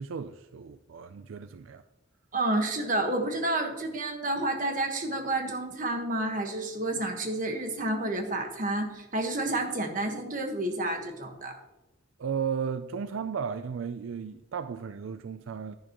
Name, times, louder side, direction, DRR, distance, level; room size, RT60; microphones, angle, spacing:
voice 1, 0.0-1.8 12.2-15.8, right 6 dB, 80° right, 0.4 m, -34 dB
voice 2, 2.3-11.6, right 2 dB, 40° right, 1.3 m, -30 dB
11.0 x 11.0 x 3.0 m
head